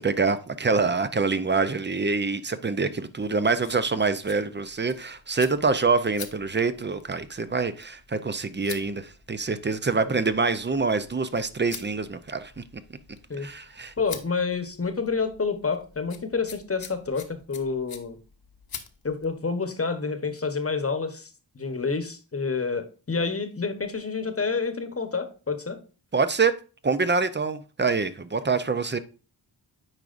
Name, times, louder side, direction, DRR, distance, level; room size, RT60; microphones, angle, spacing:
voice 1, 0.0-12.6 13.4-13.9 26.1-26.6 26.8-29.0, right 4 dB, 25° right, 0.5 m, -25 dB
sound 1, 3.5-19.4, left 6 dB, 55° left, 1.0 m, -47 dB
voice 2, 14.0-18.2 19.0-21.3 21.5-25.8, left 4 dB, 30° left, 1.1 m, -28 dB
8.8 x 4.8 x 2.5 m
cardioid pair, 70°, 44 cm